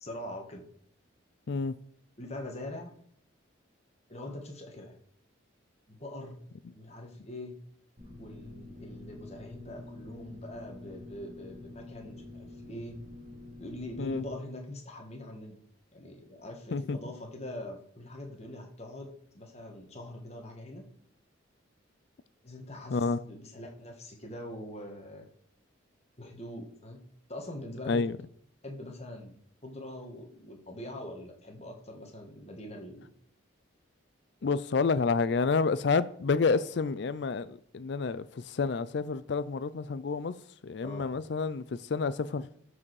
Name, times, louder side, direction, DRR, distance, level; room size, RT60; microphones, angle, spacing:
voice 1, 0.0-0.6 2.2-2.9 4.1-5.0 5.9-6.4 6.7-7.5 8.2-13.0 13.6-15.6 15.9-20.9 22.4-25.3 26.2-28.0 28.6-29.4 29.6-33.1 40.8-41.1, left 1 dB, 30° left, 1.7 m, -43 dB
voice 2, 1.5-1.8 14.0-14.2 16.7-17.0 22.9-23.2 27.9-28.2 34.4-40.4 40.6-42.5, left 4 dB, 55° left, 0.4 m, -29 dB
sound 1, 8.0-14.4, left 2 dB, 35° right, 3.7 m, -47 dB
12.5 x 4.9 x 4.8 m
head